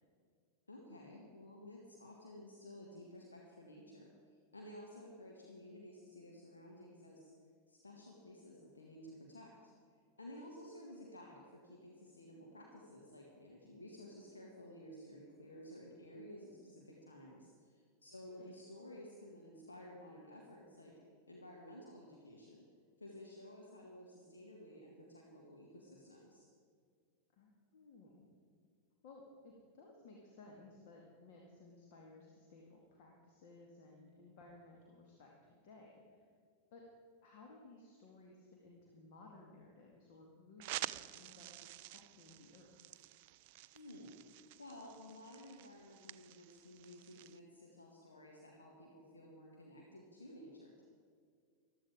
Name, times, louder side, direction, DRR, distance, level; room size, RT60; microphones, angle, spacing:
voice 1, 0.7-4.1 4.5-7.3 7.7-9.7 10.2-20.9 21.3-22.7 23.0-26.5 43.7-44.2 44.6-50.8, left 1 dB, 75° left, -1 dB, 1.9 m, -54 dB
voice 2, 27.3-28.3 29.0-36.3 36.7-36.9 37.2-42.7, left 2 dB, 50° left, -1 dB, 2.2 m, -59 dB
sound 1, 40.6-47.4, right 16 dB, 50° right, 0.4 m, -49 dB
15.0 x 12.5 x 5.0 m, 2.1 s
figure-of-eight pair, 90°, 0 cm